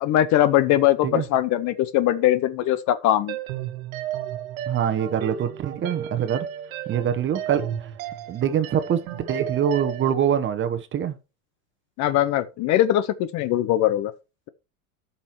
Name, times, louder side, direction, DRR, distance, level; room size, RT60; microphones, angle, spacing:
voice 1, 0.0-3.4 12.0-14.1, left 13 dB, 40° left, 0.7 m, -21 dB
sound 1, 3.3-10.1, right 11 dB, 75° right, 1.5 m, -34 dB
voice 2, 4.7-6.5 6.9-7.9 8.3-11.2, right 9 dB, 30° right, 1.0 m, -24 dB
14.0 x 5.6 x 3.0 m
supercardioid pair, 115°, 42 cm